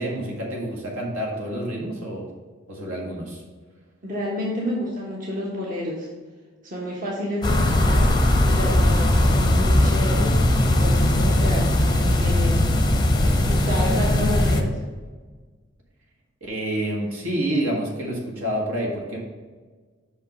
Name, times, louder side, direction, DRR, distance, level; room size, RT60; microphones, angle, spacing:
voice 1, 0.0-2.3 2.7-3.4 16.4-19.2, right 1 dB, 75° right, -2 dB, 1.9 m, -28 dB
voice 2, 4.0-6.1 6.6-8.1 8.4-12.6 13.5-14.8, equal, 40° right, -3 dB, 1.3 m, -30 dB
sound 1, 7.4-14.6, left 1 dB, 20° left, 0.6 m, -19 dB
5.8 x 5.5 x 5.3 m, 1.4 s
head